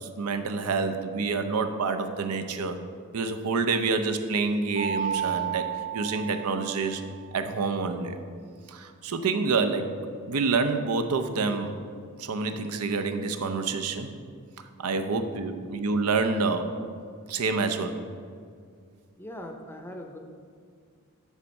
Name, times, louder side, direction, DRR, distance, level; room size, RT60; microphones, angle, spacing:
voice 1, 0.0-2.8 3.1-7.0 7.3-8.2 8.7-9.9 10.3-11.7 12.2-14.1 14.8-16.7 17.3-18.0, right 4 dB, 90° right, 7 dB, 0.6 m, -27 dB
Mallet percussion, 4.8-7.3, right 8 dB, 75° left, 0.8 m, -32 dB
voice 2, 19.2-20.2, left 1 dB, 10° left, 4 dB, 0.5 m, -40 dB
9.7 x 3.5 x 5.3 m, 2.2 s
head